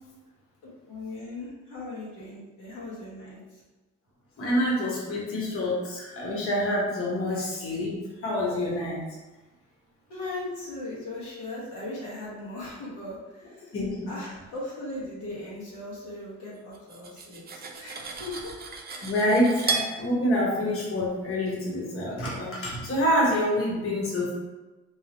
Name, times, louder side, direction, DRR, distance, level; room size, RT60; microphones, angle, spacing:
voice 1, 0.9-3.6 7.3-7.4 10.1-13.8 14.1-18.5, left 2 dB, 90° left, -7 dB, 1.3 m, -38 dB
voice 2, 4.4-9.0 13.7-14.1 19.0-24.3, equal, 45° left, -4 dB, 1.0 m, -27 dB
Cutlery silverware, 16.7-19.9, right 5 dB, 30° right, 0.5 m, -34 dB
4.7 x 2.0 x 2.9 m, 1.2 s
cardioid pair, 90°, 30 cm